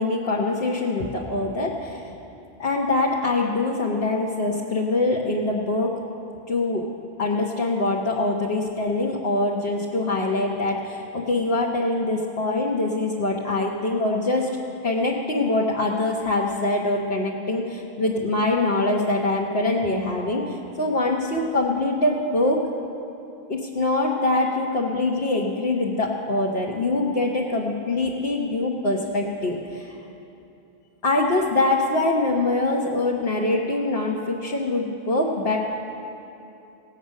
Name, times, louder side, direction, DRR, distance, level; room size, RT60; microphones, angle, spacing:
voice 1, 0.0-2.0 2.6-6.0 6.5-6.9 7.2-14.6 14.8-22.6 23.5-30.0 31.0-35.6, left 2 dB, 70° left, -3 dB, 1.3 m, -24 dB
18.0 x 8.3 x 6.4 m, 2.9 s
omnidirectional pair, 1.1 m